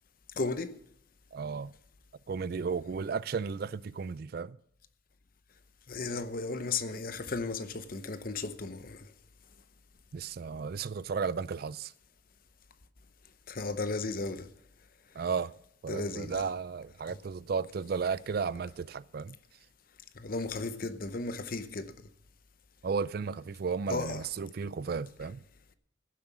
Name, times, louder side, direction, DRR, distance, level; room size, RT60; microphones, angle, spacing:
voice 1, 0.4-0.8 5.9-9.0 13.5-14.5 15.9-16.4 20.2-21.9 23.9-24.2, left 3 dB, 45° left, 0.8 m, -35 dB
voice 2, 1.3-1.7 2.3-4.6 10.1-11.9 15.2-15.5 15.8-19.4 22.8-25.4, right 5 dB, 50° right, 0.4 m, -34 dB
15.5 x 7.5 x 6.0 m
head